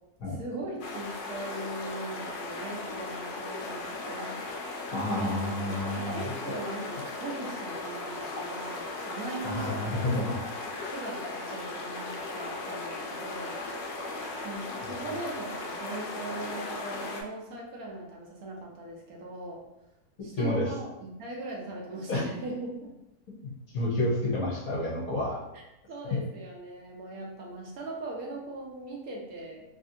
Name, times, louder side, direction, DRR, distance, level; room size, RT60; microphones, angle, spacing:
voice 1, 0.3-4.3 6.0-9.9 10.9-13.8 14.4-19.6 20.2-22.9 25.9-29.6, right 2 dB, 70° right, -1 dB, 1.1 m, -40 dB
sound 1, 0.8-17.2, left 2 dB, 85° left, 1.2 m, -37 dB
voice 2, 4.9-6.3 9.4-10.4 20.4-20.7 22.1-22.3 23.7-25.4, left 1 dB, 60° left, -6 dB, 1.3 m, -29 dB
3.3 x 2.6 x 2.6 m, 0.91 s
omnidirectional pair, 1.7 m